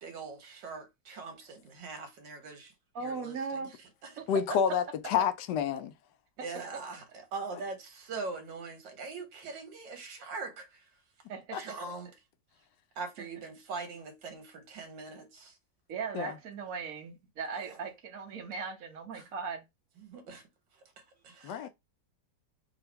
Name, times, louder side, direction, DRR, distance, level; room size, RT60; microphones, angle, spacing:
voice 1, 0.0-2.7 3.0-3.7 4.0-4.2 6.4-10.9 11.5-12.1 13.0-15.6 17.6-17.8 19.1-19.3 20.0-20.5 21.0-21.7, right 4 dB, 80° right, 1.8 m, -42 dB
voice 2, 2.9-3.8 4.2-4.3 11.3-11.6 13.2-13.3 15.9-19.6, right 5 dB, 55° right, 1.4 m, -38 dB
voice 3, 4.3-5.9 11.5-11.6 16.1-16.3 21.4-21.7, left 8 dB, 75° left, 1.2 m, -29 dB
3.8 x 2.7 x 4.4 m
omnidirectional pair, 1.9 m